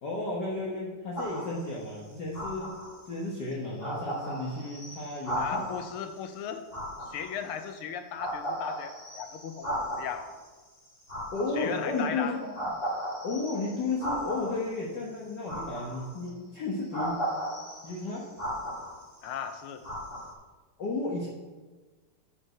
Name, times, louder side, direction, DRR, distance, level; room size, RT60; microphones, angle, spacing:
voice 1, 0.0-2.7 3.1-5.6 11.3-12.5 13.2-17.2 17.8-18.3 20.8-21.3, left 2 dB, 55° left, -4 dB, 1.7 m, -33 dB
sound 1, 1.1-1.7 2.3-3.1 3.5-3.6 3.8-6.0 6.7-7.8 8.2-10.3 11.0-12.0 12.5-14.7 15.5-16.3 16.9-19.3 19.8-20.3, equal, 25° left, 2.0 m, -36 dB
voice 2, 5.4-6.6 7.0-10.3 11.6-12.4 19.2-19.9, left 8 dB, 90° left, 8 dB, 1.6 m, -36 dB
7.3 x 6.7 x 6.5 m, 1.3 s
omnidirectional pair, 2.4 m